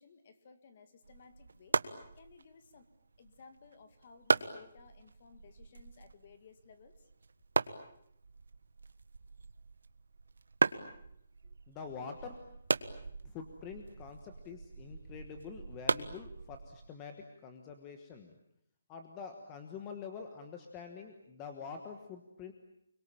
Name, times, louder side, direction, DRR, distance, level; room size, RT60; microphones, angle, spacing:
voice 1, 0.0-2.9 3.2-6.9, left 5 dB, 30° left, 9 dB, 2.0 m, -58 dB
sound 1, 1.0-16.9, right 4 dB, 85° right, 1.4 m, -38 dB
voice 2, 11.7-12.4 13.2-18.4 18.9-22.5, left 6 dB, 10° left, 5 dB, 1.3 m, -46 dB
29.5 x 22.5 x 8.8 m, 0.75 s
hypercardioid pair, 180°, 0 cm